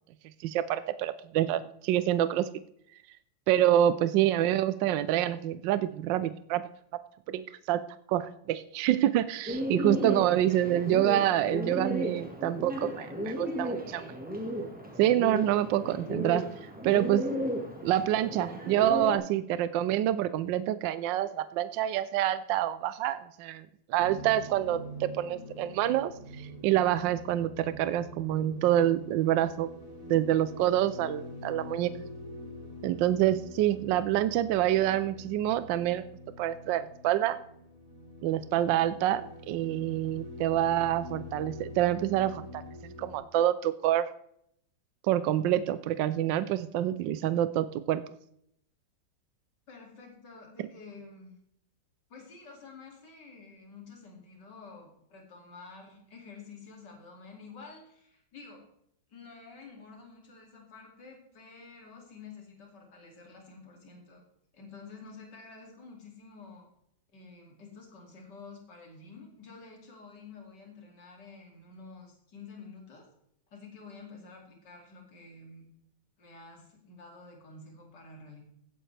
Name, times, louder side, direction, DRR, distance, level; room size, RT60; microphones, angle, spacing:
voice 1, 0.4-2.5 3.5-6.6 7.3-7.8 8.1-14.1 15.0-16.4 16.8-17.2 17.8-26.1 26.4-29.7 30.0-31.9 32.8-36.0 36.4-37.4 38.2-42.6 43.0-44.1 45.1-48.0, right 12 dB, 75° right, 14 dB, 1.2 m, -27 dB
Bird, 9.5-19.2, equal, 5° right, 1.4 m, -34 dB
sound 1, 24.0-43.1, left 1 dB, 45° right, 5.4 m, -45 dB
voice 2, 49.7-51.4 52.1-58.6 59.1-64.2 64.5-66.7 67.1-73.1 73.5-75.7 76.2-78.4, left 4 dB, 60° left, 0 dB, 3.1 m, -49 dB
16.5 x 8.7 x 3.3 m, 0.73 s
omnidirectional pair, 2.2 m